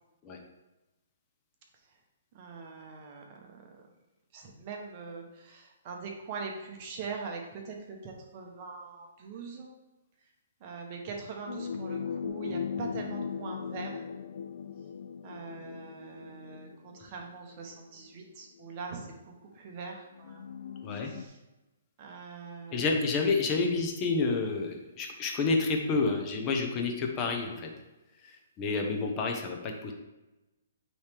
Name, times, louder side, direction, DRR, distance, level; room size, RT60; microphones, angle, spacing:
voice 1, 2.3-3.2 4.3-9.7 10.6-14.0 15.2-19.1 19.6-20.4 21.2-21.3 22.0-22.8 28.8-28.9, right 4 dB, 35° right, 1 dB, 1.0 m, -42 dB
sound 1, 11.5-17.4 18.3-18.4 20.2-21.3, left 6 dB, 65° left, 0.3 m, -38 dB
voice 2, 22.7-27.7 28.2-29.9, left 3 dB, 25° left, 2 dB, 0.8 m, -29 dB
8.7 x 3.2 x 3.4 m, 1.0 s
hypercardioid pair, 155°, 0 cm